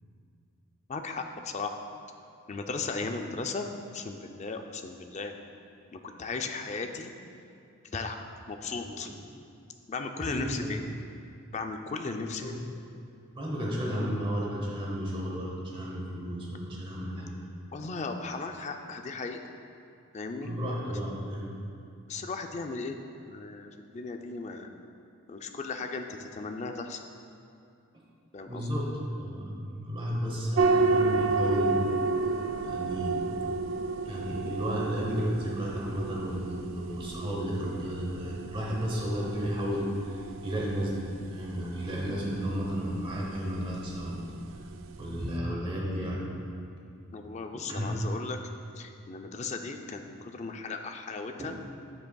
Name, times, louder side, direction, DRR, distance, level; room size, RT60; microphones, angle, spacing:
voice 1, 0.9-1.7 2.5-5.3 5.9-7.1 7.8-8.2 8.5-9.1 9.9-10.8 11.5-12.6 17.7-19.4 20.1-20.5 20.9-21.0 22.1-23.0 23.3-24.7 25.3-27.0 28.3-28.7 47.1-48.4 48.8-51.5, left 4 dB, 30° left, 5 dB, 0.4 m, -36 dB
voice 2, 10.2-10.8 12.4-12.6 13.3-17.4 20.4-21.5 28.5-32.4 32.6-33.3 34.0-44.6 45.0-46.3 47.5-47.9 51.4-51.5, equal, 20° right, -3 dB, 0.9 m, -33 dB
sound 1, 30.6-45.4, right 3 dB, 60° right, 0.3 m, -32 dB
9.5 x 7.7 x 2.3 m, 2.5 s
head